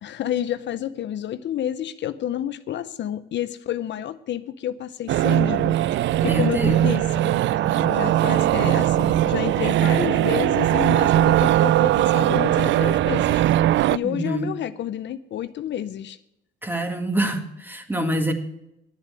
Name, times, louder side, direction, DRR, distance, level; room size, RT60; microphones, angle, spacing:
voice 1, 0.0-7.3 7.6-16.2, left 11 dB, 65° left, 13 dB, 0.6 m, -30 dB
sound 1, 5.1-14.0, right 13 dB, 70° right, 0.4 m, -20 dB
voice 2, 6.2-6.9 7.6-7.9 14.0-14.5 16.6-18.3, right 1 dB, 10° right, 6 dB, 2.0 m, -26 dB
10.5 x 7.4 x 8.3 m, 0.81 s
cardioid pair, 90°, 20 cm